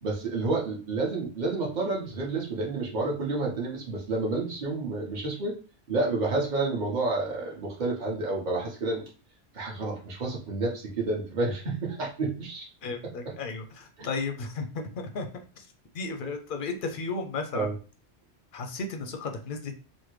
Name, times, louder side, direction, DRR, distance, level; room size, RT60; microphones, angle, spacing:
voice 1, 0.0-5.5 5.9-9.0 9.5-12.7 13.0-13.3 14.0-14.1 17.5-17.7, right 3 dB, 45° right, -2 dB, 1.1 m, -30 dB
voice 2, 12.8-15.3 15.6-15.7 15.9-17.7 18.5-19.7, left 4 dB, 60° left, 5 dB, 0.6 m, -34 dB
3.3 x 2.1 x 3.1 m, 0.35 s
omnidirectional pair, 1.1 m